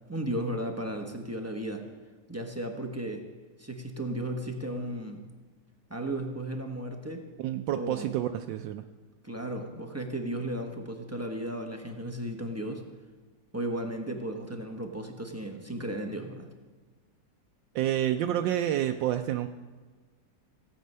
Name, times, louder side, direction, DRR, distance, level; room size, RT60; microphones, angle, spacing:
voice 1, 0.0-1.8 2.3-3.2 3.6-5.2 5.9-7.2 7.7-8.1 9.2-12.8 13.5-16.5, right 1 dB, 15° right, 2 dB, 0.7 m, -35 dB
voice 2, 7.4-8.8 17.7-19.5, right 12 dB, 80° right, 6 dB, 1.2 m, -29 dB
16.5 x 8.7 x 5.5 m, 1.3 s
omnidirectional pair, 2.0 m